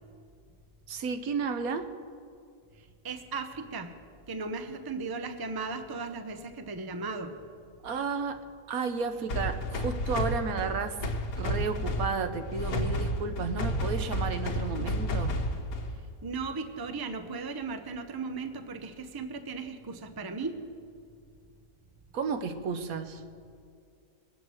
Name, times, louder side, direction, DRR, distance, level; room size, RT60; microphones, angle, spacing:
voice 1, 0.9-1.9 7.8-8.4 8.7-11.0 11.4-15.4 22.1-23.2, right 5 dB, 75° right, 8 dB, 1.3 m, -32 dB
voice 2, 3.0-3.9 4.3-7.3 16.2-20.6, right 4 dB, 25° right, 7 dB, 0.6 m, -36 dB
sound 1, 9.3-16.1, equal, 75° left, 1.6 m, -31 dB
21.5 x 8.6 x 6.3 m, 2.3 s
omnidirectional pair, 1.5 m